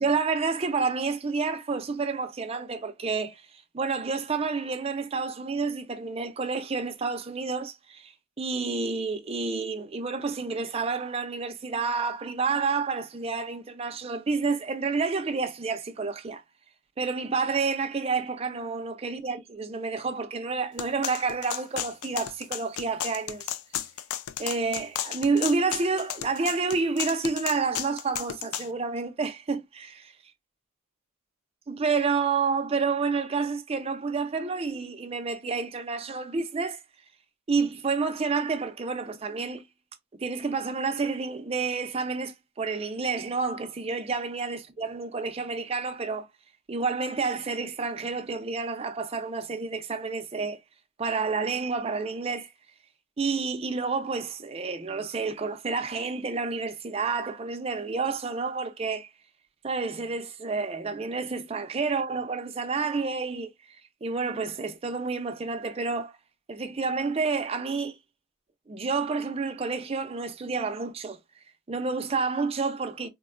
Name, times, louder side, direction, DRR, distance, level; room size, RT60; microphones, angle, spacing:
voice 1, 0.0-3.5 3.7-16.4 17.0-23.5 24.4-30.1 31.7-36.8 37.5-39.7 40.2-46.3 46.7-50.6 51.0-52.5 53.2-59.1 59.6-66.2 66.5-68.0 68.7-71.2 71.7-73.1, right 4 dB, 25° right, 0.4 m, -29 dB
sound 1, 20.8-28.7, left 11 dB, 75° left, 0.4 m, -33 dB
3.7 x 2.1 x 2.4 m
head